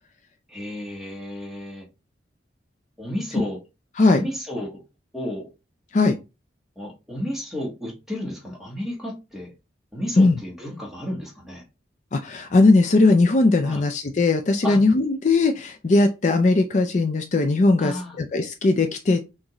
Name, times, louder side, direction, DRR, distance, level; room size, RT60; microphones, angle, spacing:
voice 1, 0.5-1.8 3.0-3.6 4.1-4.8 5.1-5.5 6.8-9.5 9.9-11.6 13.6-13.8 14.6-14.8 17.8-18.1, left 1 dB, ahead, 1.4 m, -32 dB
voice 2, 12.1-19.2, left 3 dB, 40° left, 0.4 m, -19 dB
6.2 x 2.5 x 2.9 m
head